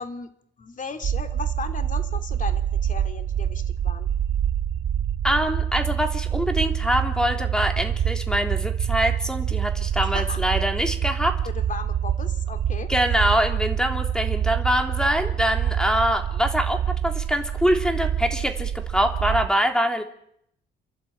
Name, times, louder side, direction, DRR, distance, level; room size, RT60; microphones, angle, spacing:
voice 1, 0.0-4.1 10.1-10.4 11.4-12.9, left 5 dB, 40° left, 8 dB, 2.9 m, -36 dB
sound 1, 1.0-19.5, right 9 dB, 70° right, 1.7 m, -26 dB
voice 2, 5.2-11.3 12.9-20.0, equal, 5° left, 4 dB, 3.3 m, -24 dB
29.5 x 11.5 x 8.9 m, 0.71 s
cardioid pair, 90°, 20 cm